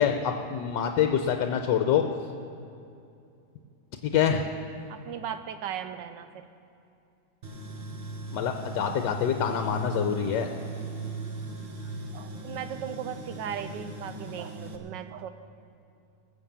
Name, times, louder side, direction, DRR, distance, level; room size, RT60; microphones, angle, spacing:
voice 1, 0.0-2.0 4.0-4.5 8.3-10.5, left 8 dB, 75° left, 5 dB, 1.3 m, -26 dB
voice 2, 4.9-6.5 12.1-15.3, right 9 dB, 75° right, 10 dB, 1.3 m, -37 dB
Tools, 7.4-14.8, right 1 dB, 40° right, 1.1 m, -38 dB
20.0 x 7.3 x 7.3 m, 2.6 s
omnidirectional pair, 2.0 m